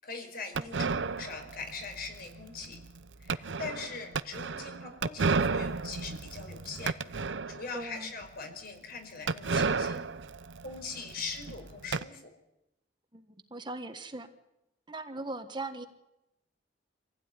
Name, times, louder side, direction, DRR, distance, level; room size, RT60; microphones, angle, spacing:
voice 1, 0.0-2.8 3.2-7.0 7.2-10.1 10.6-12.3, left 4 dB, 55° left, 5 dB, 5.1 m, -41 dB
sound 1, 0.6-7.8 8.2-8.3 8.5-8.6 9.3-12.0, right 4 dB, 90° right, 0.8 m, -33 dB
voice 2, 7.7-8.1 13.1-14.3 14.9-15.9, right 2 dB, 25° right, 7 dB, 1.5 m, -39 dB
26.0 x 16.0 x 9.7 m, 0.92 s
head